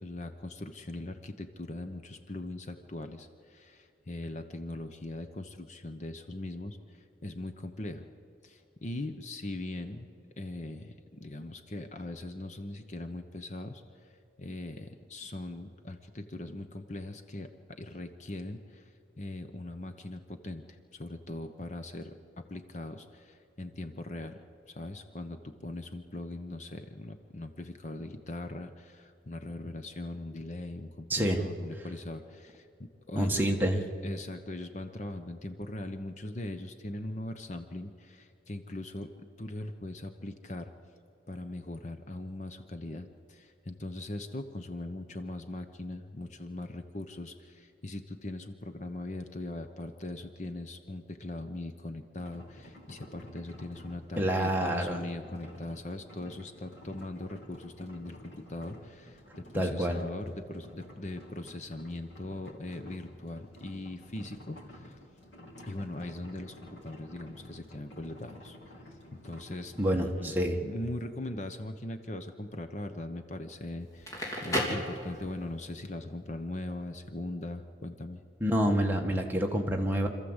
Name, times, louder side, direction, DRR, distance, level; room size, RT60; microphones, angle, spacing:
voice 1, 0.0-8.1 8.4-13.8 14.4-18.8 19.2-24.4 24.7-39.1 39.4-40.7 41.3-65.0 65.7-78.2, left 1 dB, 40° left, 8 dB, 0.9 m, -40 dB
voice 2, 31.1-31.4 33.1-33.8 54.2-55.0 59.5-60.0 69.8-70.6 78.4-80.1, equal, 10° right, 1 dB, 1.5 m, -27 dB
sound 1, 52.2-70.3, left 1 dB, 90° left, 3.4 m, -51 dB
Crackle, 73.9-75.6, equal, 15° left, 3.2 m, -33 dB
26.5 x 14.0 x 8.1 m, 2.5 s
head